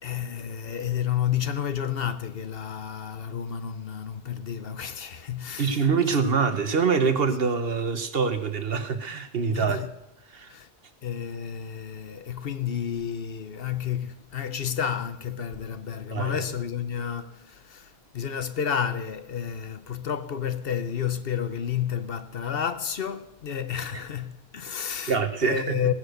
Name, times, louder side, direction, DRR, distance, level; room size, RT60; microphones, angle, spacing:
voice 1, 0.0-6.1 9.5-10.0 10.5-10.7 11.0-25.9, left 8 dB, 60° left, 1.0 m, -31 dB
voice 2, 5.6-9.8 10.3-10.5 16.1-16.4 25.1-25.8, right 5 dB, 60° right, 1.4 m, -25 dB
18.0 x 9.5 x 6.6 m
omnidirectional pair, 1.1 m